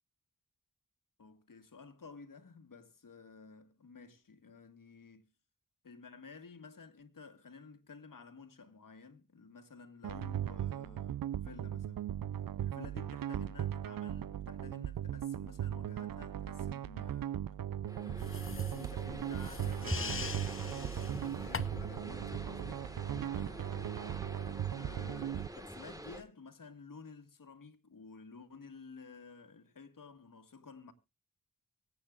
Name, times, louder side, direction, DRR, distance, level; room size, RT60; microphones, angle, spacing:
voice 1, 1.2-5.3 5.8-12.1 12.6-17.4 18.0-22.9 23.3-23.7 24.8-30.9, left 4 dB, 65° left, 1.7 m, -53 dB
sound 1, 10.0-25.5, right 10 dB, 75° right, 0.5 m, -38 dB
sound 2, 17.9-26.2, right 1 dB, 10° right, 1.7 m, -45 dB
sound 3, 18.2-22.0, left 5 dB, 40° left, 0.8 m, -43 dB
24.0 x 8.5 x 2.5 m
wide cardioid pair, 75°, 35 cm